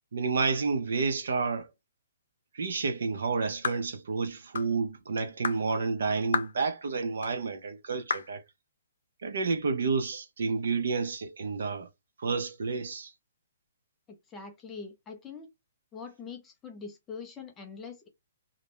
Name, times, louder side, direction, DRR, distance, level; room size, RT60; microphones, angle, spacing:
voice 1, 0.1-1.7 2.5-8.4 9.2-11.9 12.2-13.1, right 4 dB, 60° right, 0.5 m, -30 dB
sound 1, 3.6-3.9 4.6-4.7 5.4-5.6 6.3-6.6 7.2-7.3 8.1-8.3, left 5 dB, 75° left, 0.6 m, -31 dB
voice 2, 14.1-15.5 15.9-18.1, left 5 dB, 10° left, 0.4 m, -43 dB
2.5 x 2.0 x 2.9 m
hypercardioid pair, 180°, 0 cm